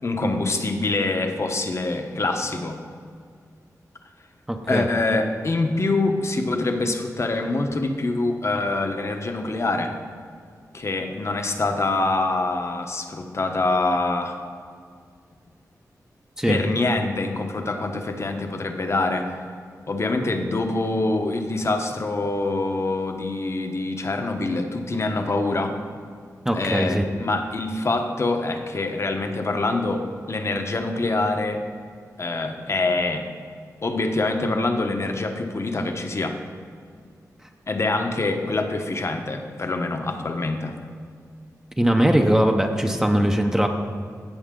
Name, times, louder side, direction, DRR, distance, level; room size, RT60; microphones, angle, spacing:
voice 1, 0.0-2.8 4.7-9.9 10.7-14.4 16.5-19.4 19.9-25.8 26.5-31.6 32.2-33.3 33.8-36.4 37.7-40.8, left 2 dB, 45° left, 5 dB, 1.0 m, -25 dB
voice 2, 4.5-4.9 16.4-16.6 26.4-27.0 41.8-43.7, right 1 dB, 10° right, 3 dB, 0.8 m, -20 dB
16.0 x 6.2 x 3.8 m, 2.2 s
cardioid pair, 70°, 6 cm